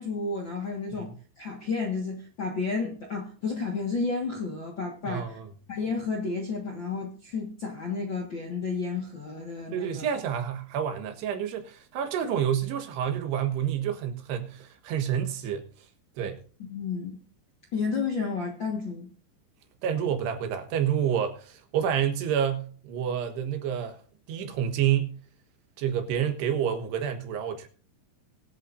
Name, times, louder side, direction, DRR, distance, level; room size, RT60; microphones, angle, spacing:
voice 1, 0.0-5.4 5.7-10.1 16.6-17.2 17.7-19.1, left 4 dB, 55° left, 1.3 m, -31 dB
voice 2, 5.1-5.5 9.7-15.7 16.2-16.4 19.8-24.0 24.3-25.2 25.8-27.7, right 9 dB, 85° right, 3.5 m, -28 dB
22.5 x 8.4 x 2.6 m
omnidirectional pair, 4.7 m